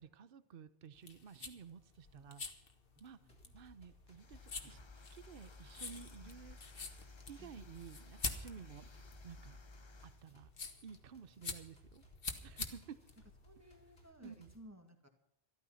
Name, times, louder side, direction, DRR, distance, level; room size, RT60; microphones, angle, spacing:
voice 1, 0.0-2.4 3.0-3.2 3.5-6.6 7.3-8.9 9.2-9.6 10.0-10.5 10.8-12.0 12.4-13.0 14.2-14.5, right 7 dB, 55° right, 14 dB, 1.0 m, -53 dB
sound 1, 0.9-14.1, left 4 dB, 55° left, 1.6 m, -47 dB
voice 2, 3.2-3.5 4.6-4.8 6.2-6.4 6.6-6.7 7.4-7.8 11.3-11.6 12.4-12.8 13.4-15.1, equal, 15° right, 5 dB, 2.0 m, -60 dB
sound 2, 3.3-14.6, equal, 85° left, 3.0 m, -65 dB
sound 3, 4.1-10.2, left 3 dB, 30° left, 0.7 m, -56 dB
13.5 x 13.5 x 5.7 m, 0.78 s
omnidirectional pair, 1.1 m